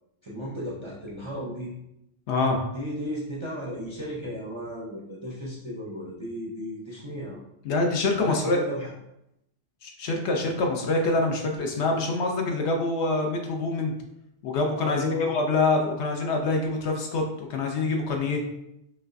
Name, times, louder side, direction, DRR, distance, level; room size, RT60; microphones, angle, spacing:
voice 1, 0.2-1.7 2.7-7.4 8.2-8.9 14.8-15.4, left 1 dB, 35° right, -5 dB, 0.4 m, -34 dB
voice 2, 2.3-2.6 7.6-8.6 9.8-13.9 14.4-18.4, left 3 dB, 70° left, 2 dB, 0.9 m, -25 dB
5.2 x 2.3 x 2.5 m, 0.82 s
omnidirectional pair, 1.2 m